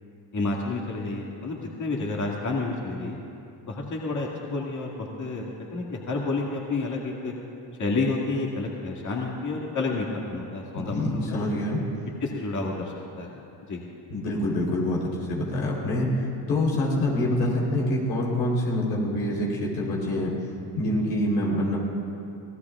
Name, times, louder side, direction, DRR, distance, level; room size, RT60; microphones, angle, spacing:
voice 1, 0.3-3.2 3.7-7.3 7.8-11.4 12.2-13.4 13.7-13.8, left 3 dB, 35° left, -2 dB, 2.1 m, -30 dB
voice 2, 10.7-11.8 14.1-20.3 20.7-21.8, left 1 dB, 85° left, -3 dB, 3.7 m, -26 dB
25.5 x 16.5 x 2.4 m, 2.7 s
supercardioid pair, 75°, 50 cm